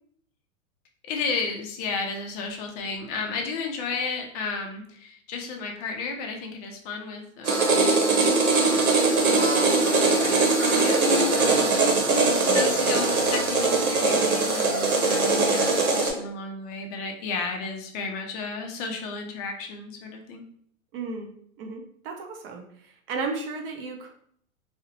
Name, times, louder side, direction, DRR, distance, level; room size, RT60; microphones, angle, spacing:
voice 1, 1.1-20.4, left 4 dB, 30° left, 2 dB, 0.4 m, -33 dB
sound 1, 7.4-16.1, right 3 dB, 90° right, 0.8 m, -21 dB
voice 2, 20.9-24.1, right 4 dB, 45° right, 3 dB, 0.6 m, -34 dB
2.5 x 2.1 x 2.7 m, 0.65 s
hypercardioid pair, 120°, 42 cm